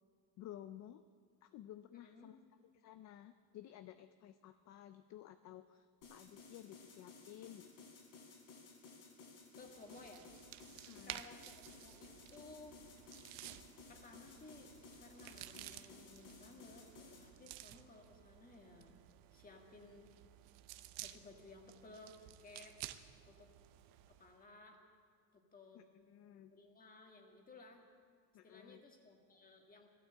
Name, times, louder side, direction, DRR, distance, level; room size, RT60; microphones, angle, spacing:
voice 1, 0.4-1.0 1.4-2.4 2.7-7.9 10.8-11.2 25.7-26.5 28.3-28.8, left 12 dB, 40° left, 11 dB, 0.4 m, -54 dB
voice 2, 1.9-2.3 9.6-10.3 11.0-12.8 13.9-19.0 19.3-20.1 21.0-22.8 23.2-23.5 24.1-24.8 25.3-25.8 26.5-27.8 28.4-29.9, left 3 dB, 20° left, 3 dB, 1.7 m, -58 dB
sound 1, 6.0-17.3, left 4 dB, 60° left, 3.7 m, -58 dB
sound 2, 9.7-24.3, right 14 dB, 75° right, 0.8 m, -54 dB
15.0 x 12.5 x 7.5 m, 2.1 s
cardioid pair, 165°, 44 cm